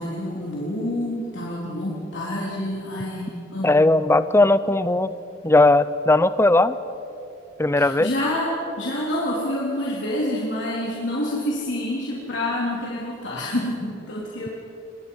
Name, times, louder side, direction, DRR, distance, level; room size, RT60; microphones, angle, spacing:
voice 1, 0.0-3.8 7.8-14.5, left 1 dB, 65° left, -5 dB, 3.5 m, -27 dB
voice 2, 3.6-5.1 5.4-6.8 7.6-8.1, left 2 dB, 15° left, 14 dB, 0.6 m, -18 dB
27.5 x 22.0 x 5.6 m, 2.8 s
head